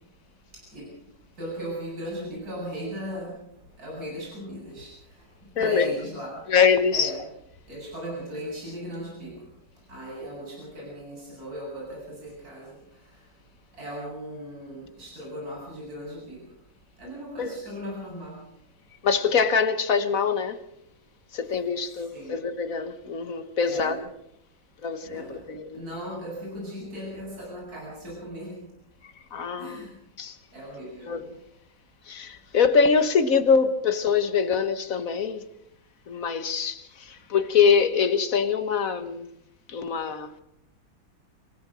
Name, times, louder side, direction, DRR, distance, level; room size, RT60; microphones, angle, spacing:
voice 1, 0.5-0.9 1.4-6.5 6.9-7.2 7.7-13.3 13.7-16.4 17.0-18.4 22.1-22.4 23.6-24.0 25.0-25.5 25.7-28.5 29.6-30.0 30.5-31.2, equal, 50° right, 8.7 m, -37 dB
voice 2, 6.5-7.1 17.4-17.5 19.0-20.6 21.3-24.0 24.8-25.8 29.0-29.9 30.2-30.4 31.1-31.4 32.0-35.4 36.1-39.3 39.7-40.3, left 6 dB, 50° left, 1.6 m, -24 dB
26.5 x 17.0 x 6.3 m
omnidirectional pair, 2.0 m